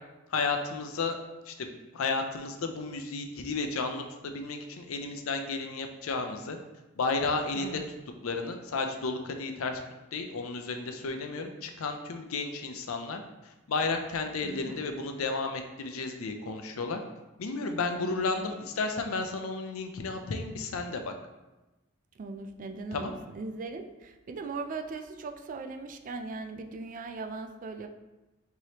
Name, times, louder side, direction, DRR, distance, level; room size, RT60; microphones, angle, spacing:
voice 1, 0.3-1.2 1.5-6.6 7.0-7.8 8.2-9.8 10.1-13.2 13.7-17.0 17.4-21.1 22.9-23.1, left 3 dB, 80° left, 5 dB, 0.5 m, -32 dB
voice 2, 7.5-7.9 14.4-14.8 18.0-18.3 22.2-27.9, right 3 dB, 40° right, 7 dB, 0.3 m, -39 dB
4.7 x 3.0 x 2.8 m, 1.1 s
head